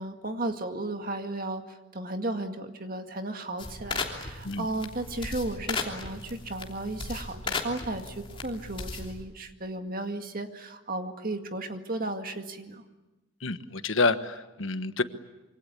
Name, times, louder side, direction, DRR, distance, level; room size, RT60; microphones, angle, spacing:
voice 1, 0.0-12.8, right 2 dB, 45° right, 6 dB, 2.1 m, -34 dB
sound 1, 3.6-9.2, left 3 dB, 25° left, 3.2 m, -36 dB
voice 2, 13.4-15.0, left 3 dB, 70° left, 10 dB, 1.3 m, -28 dB
26.5 x 25.0 x 8.5 m, 1.1 s
head